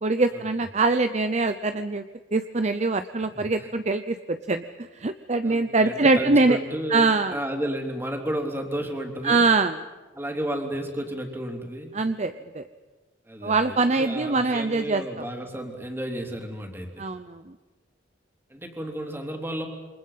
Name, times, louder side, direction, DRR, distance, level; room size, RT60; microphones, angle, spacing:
voice 1, 0.0-2.0 2.3-6.6 6.9-7.4 9.2-9.8 11.9-12.6 13.4-15.2 17.0-17.5, right 3 dB, 40° right, 9 dB, 0.7 m, -23 dB
voice 2, 3.3-3.7 5.4-9.4 10.1-11.9 13.3-17.0 18.5-19.7, right 1 dB, 10° right, 2 dB, 3.4 m, -32 dB
28.0 x 25.5 x 5.8 m, 1.3 s
head